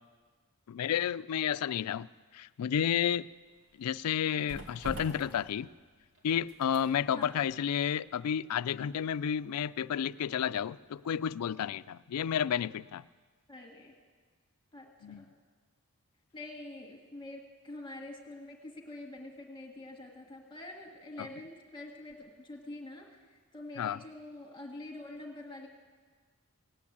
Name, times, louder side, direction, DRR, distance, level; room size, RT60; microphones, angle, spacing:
voice 1, 0.7-2.1 2.3-3.3 3.8-5.7 6.2-13.0 15.0-15.2 23.8-24.0, left 8 dB, 90° left, 17 dB, 0.4 m, -31 dB
sound 1, 3.2-11.2 11.5-11.7, right 1 dB, 60° right, 2.7 m, -50 dB
voice 2, 7.1-7.5 13.5-13.9 14.7-15.3 16.3-23.2 23.5-25.7, left 2 dB, 20° left, 0 dB, 1.8 m, -46 dB
18.0 x 8.6 x 8.5 m, 1.5 s
head